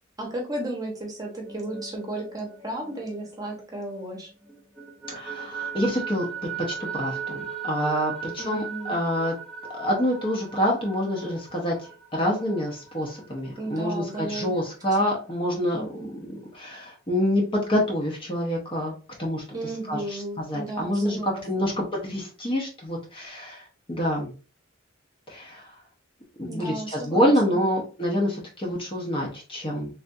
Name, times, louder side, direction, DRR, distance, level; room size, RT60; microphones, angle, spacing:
voice 1, 0.2-4.3 8.4-9.0 13.6-14.7 15.0-15.1 15.7-16.1 19.5-21.7 26.5-27.7, right 1 dB, 20° right, -2 dB, 1.0 m, -34 dB
sound 1, 1.3-4.1 4.5-13.9, right 6 dB, ahead, 0.4 m, -38 dB
voice 2, 5.1-9.3 9.7-11.7 12.1-15.8 16.1-18.9 19.2-19.4 19.9-23.6 23.9-24.3 25.3-25.7 26.4-29.9, equal, 25° left, -2 dB, 0.8 m, -27 dB
3.4 x 2.5 x 2.6 m, 0.35 s
head